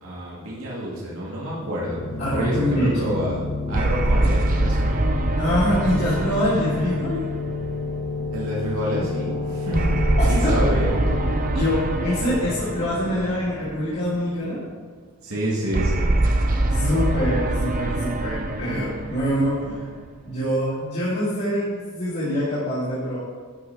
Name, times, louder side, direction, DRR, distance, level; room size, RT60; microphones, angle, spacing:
voice 1, 0.0-2.0 2.3-5.2 8.3-11.0 11.5-11.6 15.2-16.2, equal, 80° right, -6 dB, 2.5 m, -28 dB
sound 1, 1.6-13.2, left 3 dB, 80° left, 1.8 m, -31 dB
voice 2, 2.2-3.1 5.4-7.3 10.4-10.6 11.5-14.6 16.6-19.9 20.2-23.2, equal, 50° left, -12 dB, 3.0 m, -24 dB
sound 2, 3.7-8.3 9.7-14.1 15.7-20.3, right 2 dB, 40° right, 0.7 m, -24 dB
12.0 x 5.8 x 4.8 m, 1.5 s
head